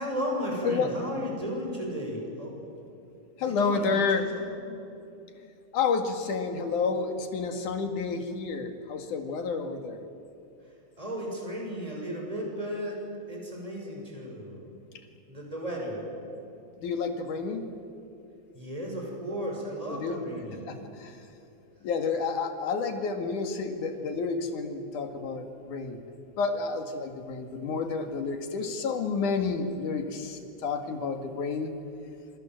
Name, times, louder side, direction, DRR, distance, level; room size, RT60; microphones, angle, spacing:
voice 1, 0.0-2.6 3.4-4.0 4.3-4.7 11.0-14.7 15.3-16.1 18.5-20.7, equal, 10° right, -1 dB, 6.6 m, -34 dB
voice 2, 3.4-4.2 5.7-10.0 16.8-17.6 19.9-20.2 21.0-21.1 21.8-26.0 26.4-31.7, left 5 dB, 80° left, 6 dB, 3.5 m, -30 dB
27.5 x 27.5 x 7.8 m, 2.8 s
omnidirectional pair, 3.5 m